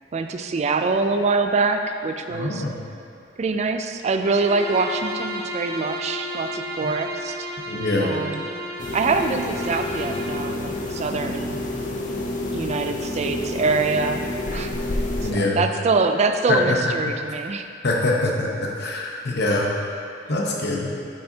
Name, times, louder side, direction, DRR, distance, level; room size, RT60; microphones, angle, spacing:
voice 1, 0.1-2.6 3.4-7.3 8.0-8.5 8.9-11.6 12.4-14.7 15.2-17.7, right 4 dB, 35° right, 6 dB, 0.3 m, -24 dB
voice 2, 2.3-2.8 6.8-6.9 7.7-8.2 15.2-15.7 16.5-16.9 17.8-19.9 20.3-20.9, left 2 dB, 60° left, -2 dB, 1.0 m, -24 dB
Bowed string instrument, 4.3-10.4, equal, 60° right, 0.8 m, -33 dB
sound 1, 8.8-15.3, left 2 dB, 45° left, 0.6 m, -29 dB
8.8 x 5.5 x 2.8 m, 2.6 s
head